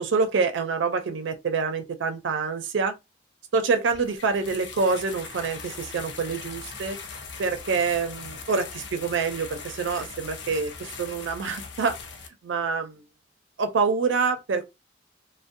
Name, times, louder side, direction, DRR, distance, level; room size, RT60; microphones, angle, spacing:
voice 1, 0.0-3.0 3.5-7.0 7.4-12.0 12.4-13.0 13.6-14.6, right 4 dB, 85° right, 0.4 m, -26 dB
sound 1, 3.9-12.3, left 5 dB, 70° left, 0.5 m, -40 dB
2.6 x 2.0 x 2.5 m
head